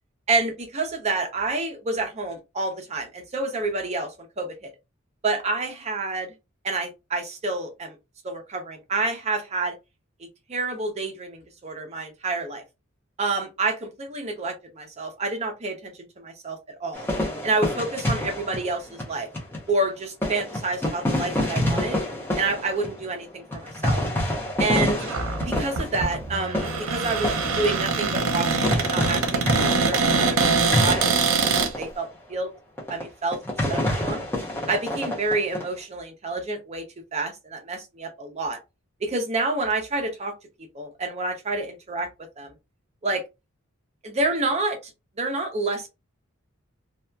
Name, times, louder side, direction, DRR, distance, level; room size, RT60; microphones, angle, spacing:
voice 1, 0.3-4.7 5.2-6.3 6.6-8.0 8.2-9.8 10.5-12.6 13.2-17.1 17.4-19.3 19.7-22.0 22.4-24.0 24.6-25.1 25.5-32.5 32.9-33.4 33.7-34.2 34.7-36.8 37.1-38.6 39.0-40.3 40.7-42.1 42.4-42.5 43.0-43.2 44.0-44.8 45.2-45.9, right 3 dB, 30° right, 0.6 m, -28 dB
sound 1, 16.9-19.7 20.2-28.4 28.6-31.9 32.3-32.4 32.8-33.0 33.3-35.6, left 1 dB, 10° left, 0.6 m, -28 dB
Cupboard open or close, 25.0-31.7, right 4 dB, 85° right, 0.6 m, -24 dB
2.7 x 2.3 x 2.2 m
head